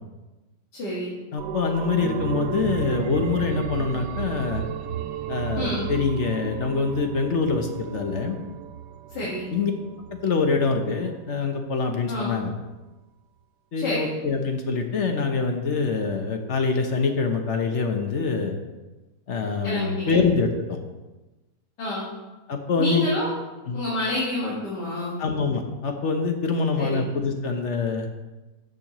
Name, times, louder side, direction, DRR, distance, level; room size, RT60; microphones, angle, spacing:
voice 1, 0.7-1.1 5.6-5.9 9.1-9.5 12.1-12.4 13.8-14.1 19.6-20.2 21.8-22.1 22.8-23.3 23.7-25.2 26.8-27.0, left 2 dB, 85° left, -7 dB, 2.3 m, -28 dB
voice 2, 1.3-4.6 5.3-8.4 9.5-9.7 10.2-12.5 13.7-18.6 19.3-20.8 22.5-23.1 23.7-23.8 25.2-28.1, left 4 dB, 55° left, 4 dB, 1.0 m, -25 dB
sound 1, 1.4-10.7 11.1-11.2, right 8 dB, 85° right, 1.2 m, -33 dB
13.5 x 6.5 x 3.0 m, 1.1 s
omnidirectional pair, 1.8 m